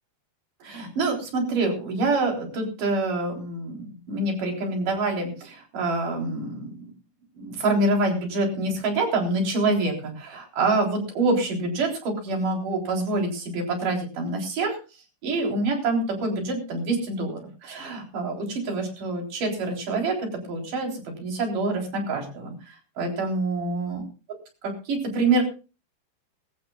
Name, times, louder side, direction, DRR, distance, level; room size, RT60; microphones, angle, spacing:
voice 1, 0.6-6.9 7.4-14.8 15.2-24.0 24.6-25.4, right 2 dB, 50° right, 1 dB, 5.1 m, -26 dB
21.0 x 15.5 x 2.4 m, 0.32 s
omnidirectional pair, 4.9 m